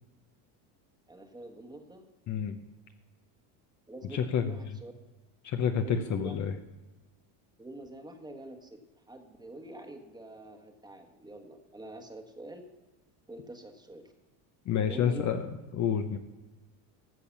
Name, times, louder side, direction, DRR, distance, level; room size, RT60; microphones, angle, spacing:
voice 1, 1.1-2.0 3.9-4.9 5.8-6.4 7.6-12.6 13.3-14.1 14.8-15.4, right 2 dB, 10° right, 4 dB, 1.3 m, -46 dB
voice 2, 2.3-2.6 4.1-4.5 5.4-6.5 14.7-15.4 15.8-16.2, left 7 dB, 35° left, 8 dB, 0.7 m, -28 dB
14.0 x 6.8 x 7.1 m, 1.2 s
cardioid pair, 135°, 49 cm